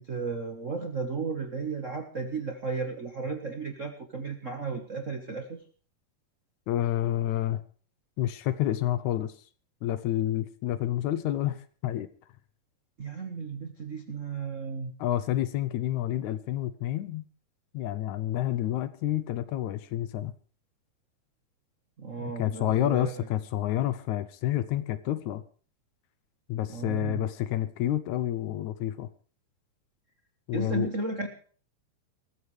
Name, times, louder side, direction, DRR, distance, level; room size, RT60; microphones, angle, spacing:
voice 1, 0.0-5.6 13.0-14.9 22.0-23.1 26.7-27.3 30.5-31.3, right 4 dB, 85° right, 0.6 m, -34 dB
voice 2, 6.7-7.6 8.2-9.3 9.8-12.1 15.0-17.3 17.7-20.3 22.1-25.4 26.5-29.1 30.5-30.9, left 13 dB, 75° left, 1.9 m, -29 dB
21.0 x 14.0 x 3.3 m
omnidirectional pair, 3.8 m